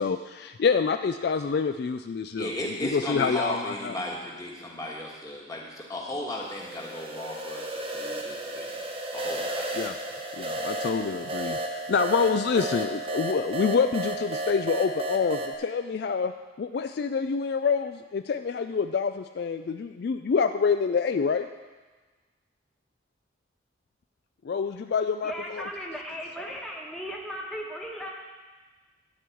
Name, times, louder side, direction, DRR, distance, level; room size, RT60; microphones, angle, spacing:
voice 1, 0.0-4.0 9.7-10.0 10.4-21.5 24.4-25.7, left 5 dB, 55° left, 9 dB, 0.3 m, -27 dB
voice 2, 2.3-8.8 9.1-9.7 10.6-10.7, left 1 dB, 20° left, -2 dB, 1.6 m, -35 dB
sound 1, 6.5-15.6, right 2 dB, 30° right, 1.0 m, -33 dB
voice 3, 25.2-28.1, equal, ahead, -2 dB, 1.2 m, -36 dB
12.0 x 4.7 x 8.4 m, 1.3 s
head